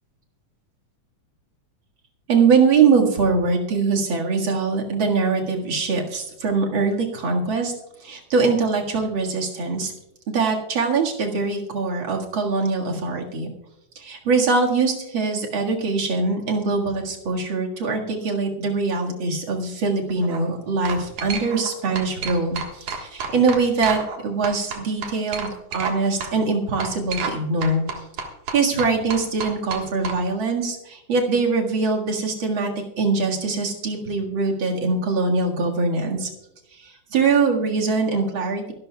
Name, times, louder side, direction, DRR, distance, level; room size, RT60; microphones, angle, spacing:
voice 1, 2.3-7.7 8.0-9.9 10.3-13.5 14.0-27.8 28.5-32.7 33.0-36.3 36.8-38.7, right 4 dB, 45° right, 0 dB, 2.3 m, -22 dB
sound 1, 20.1-20.4 20.8-21.7 21.9-24.2 24.4-25.9 26.2-26.3 26.8-27.4 27.6-30.2, right 5 dB, 85° right, 3.0 m, -30 dB
23.0 x 12.0 x 2.3 m, 0.84 s
omnidirectional pair, 3.3 m